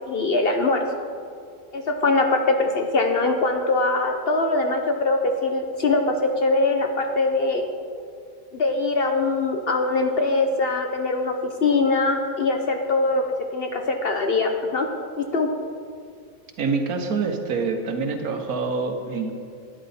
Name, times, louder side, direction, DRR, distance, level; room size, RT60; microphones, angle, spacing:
voice 1, 0.1-0.8 1.7-7.6 8.5-13.2 13.5-14.9 15.2-15.5, left 3 dB, 50° left, 4 dB, 0.8 m, -22 dB
voice 2, 16.6-19.3, right 4 dB, 80° right, 5 dB, 1.5 m, -26 dB
12.5 x 9.7 x 4.2 m, 2.3 s
omnidirectional pair, 1.5 m